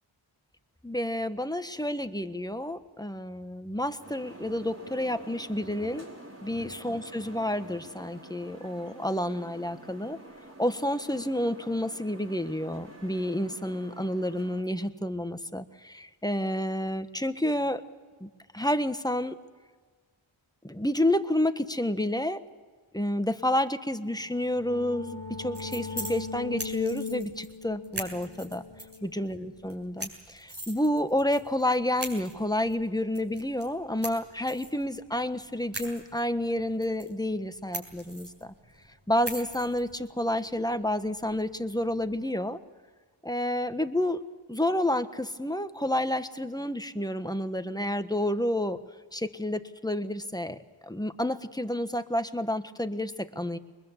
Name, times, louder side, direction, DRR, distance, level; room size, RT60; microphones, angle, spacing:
voice 1, 0.8-6.1 6.4-10.2 10.6-17.8 18.2-19.4 20.6-22.4 22.9-28.6 29.0-38.5 39.1-42.6 43.2-44.2 44.5-48.8 49.1-53.6, left 1 dB, 10° left, 10 dB, 1.3 m, -30 dB
sound 1, 4.0-14.6, right 1 dB, 30° right, 5.3 m, -48 dB
sound 2, 24.2-29.8, left 5 dB, 65° left, 1.7 m, -39 dB
sound 3, 25.2-42.1, right 1 dB, 55° right, 6.9 m, -44 dB
23.0 x 21.0 x 8.3 m, 1.5 s
cardioid pair, 45°, 49 cm